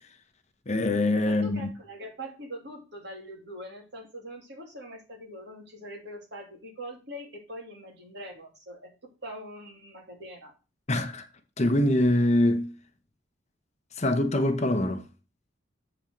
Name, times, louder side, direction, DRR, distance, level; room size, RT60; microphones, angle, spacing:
voice 1, 0.7-1.7 10.9-11.2 11.6-12.7 14.0-15.0, left 1 dB, 35° left, 1.0 m, -24 dB
voice 2, 1.3-8.9 9.2-10.5, equal, 60° right, 2.8 m, -42 dB
7.5 x 4.4 x 6.5 m
head